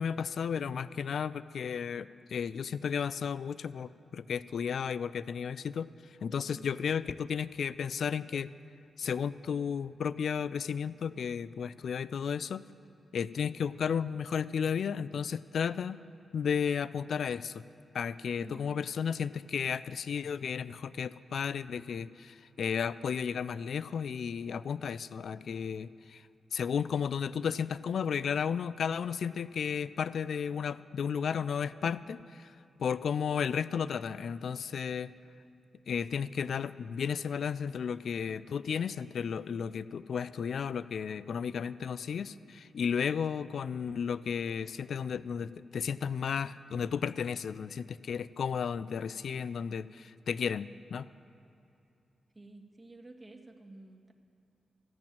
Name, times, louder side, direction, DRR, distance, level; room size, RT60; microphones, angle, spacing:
voice 1, 0.0-5.9 6.2-8.5 9.0-12.6 13.1-16.0 16.3-17.6 17.9-26.2 26.5-32.5 32.8-35.1 35.9-51.1, left 7 dB, 70° left, 17 dB, 0.3 m, -33 dB
voice 2, 18.4-18.7 52.3-54.1, right 2 dB, 25° right, 1 dB, 1.6 m, -51 dB
14.0 x 6.0 x 8.8 m, 2.7 s
supercardioid pair, 45°, 0 cm